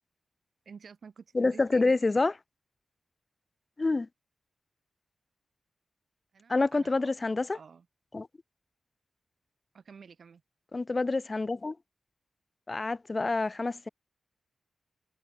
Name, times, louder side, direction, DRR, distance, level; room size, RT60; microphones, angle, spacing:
voice 1, 0.7-1.9 6.3-7.1 7.5-7.9 9.7-10.4, right 6 dB, 65° right, 2.5 m, -50 dB
voice 2, 1.3-2.3 3.8-4.1 6.5-7.6 8.1-8.3 10.7-11.8 12.7-13.9, left 3 dB, 30° left, 0.5 m, -27 dB
wide cardioid pair, 110°, 0 cm